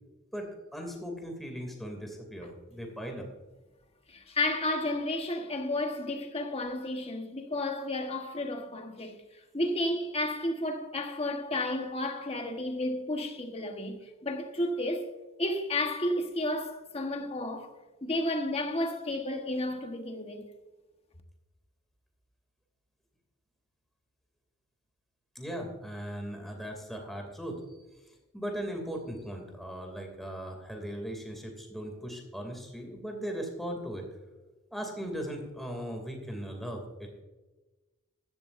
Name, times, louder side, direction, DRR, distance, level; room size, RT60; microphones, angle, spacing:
voice 1, 0.3-3.3 25.3-34.1 34.7-37.2, equal, ahead, 2.6 m, -38 dB
voice 2, 4.1-9.2 9.5-15.1 15.4-20.5, left 1 dB, 30° left, 1.3 m, -32 dB
15.0 x 12.5 x 2.6 m
head